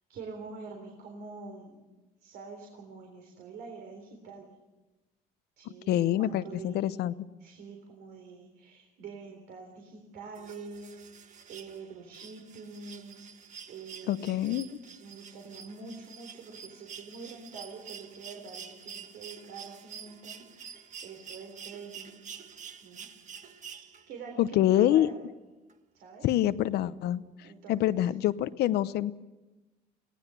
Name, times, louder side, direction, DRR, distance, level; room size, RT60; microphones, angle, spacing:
voice 1, 0.1-1.8 2.2-4.5 5.6-6.9 7.4-14.6 15.0-22.2 22.8-23.1 24.1-25.1 25.9-26.3 27.4-28.1, right 4 dB, 75° right, 2 dB, 3.8 m, -46 dB
voice 2, 5.9-7.1 14.1-14.7 24.4-25.1 26.2-27.2 27.7-29.1, left 13 dB, 75° left, 15 dB, 0.8 m, -26 dB
sound 1, 10.4-24.3 25.7-25.8, right 7 dB, 45° right, 1.5 m, -48 dB
22.5 x 17.5 x 6.9 m, 1.1 s
cardioid pair, 110°, 17 cm